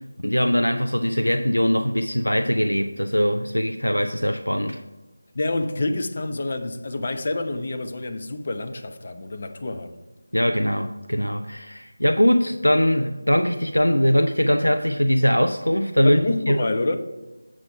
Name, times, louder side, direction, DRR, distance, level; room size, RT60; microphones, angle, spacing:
voice 1, 0.2-4.8 10.3-16.2 16.5-16.6, equal, 90° left, 0.5 m, -21 dB
voice 2, 5.3-10.0 16.0-17.0, left 2 dB, 40° left, 0.7 m, -27 dB
7.6 x 6.0 x 4.7 m
figure-of-eight pair, 165°, 0 cm